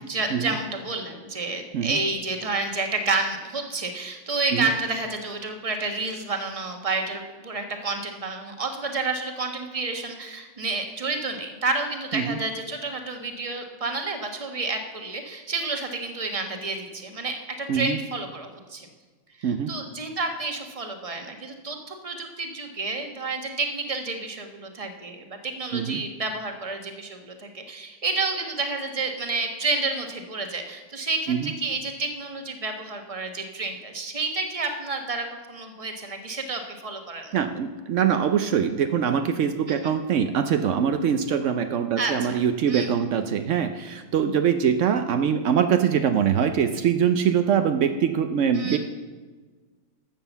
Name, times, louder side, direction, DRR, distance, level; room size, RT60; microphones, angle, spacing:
voice 1, 0.0-18.9 19.4-37.4 39.7-39.9 42.0-42.9 48.5-48.8, right 3 dB, 20° right, 5 dB, 1.1 m, -30 dB
voice 2, 37.3-48.8, right 8 dB, 85° right, 8 dB, 0.6 m, -23 dB
12.5 x 7.5 x 7.0 m, 1.4 s
omnidirectional pair, 2.0 m